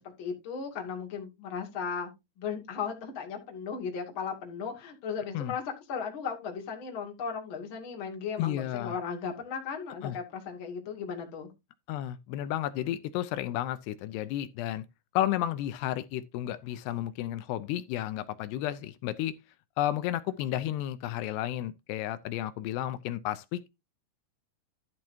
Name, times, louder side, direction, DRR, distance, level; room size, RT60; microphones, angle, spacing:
voice 1, 0.0-2.1 2.4-5.6 5.9-11.5, left 6 dB, 35° left, 2.3 m, -36 dB
voice 2, 8.4-9.0 10.0-10.2 11.9-14.8 15.1-19.3 19.8-23.7, left 13 dB, 80° left, 2.5 m, -32 dB
12.5 x 7.5 x 2.7 m
omnidirectional pair, 5.3 m